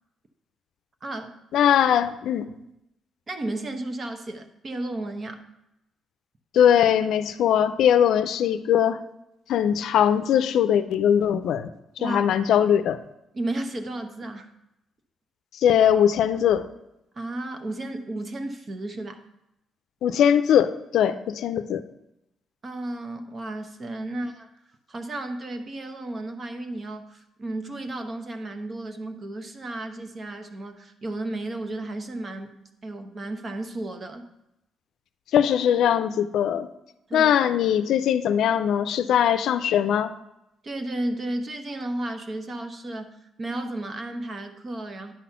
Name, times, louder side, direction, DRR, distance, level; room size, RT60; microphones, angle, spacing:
voice 1, 1.0-1.4 3.3-5.5 12.0-12.2 13.3-14.5 17.1-19.2 22.6-24.5 24.9-32.5 32.8-34.2 37.1-37.3 40.6-45.1, right 1 dB, 35° right, 6 dB, 1.0 m, -33 dB
voice 2, 1.5-2.5 6.5-9.0 9.5-11.7 12.0-13.0 15.5-16.7 20.0-21.8 35.3-36.7 37.1-40.1, left 9 dB, 75° left, 11 dB, 0.5 m, -21 dB
10.5 x 4.2 x 5.7 m, 0.87 s
cardioid pair, 120°, 0 cm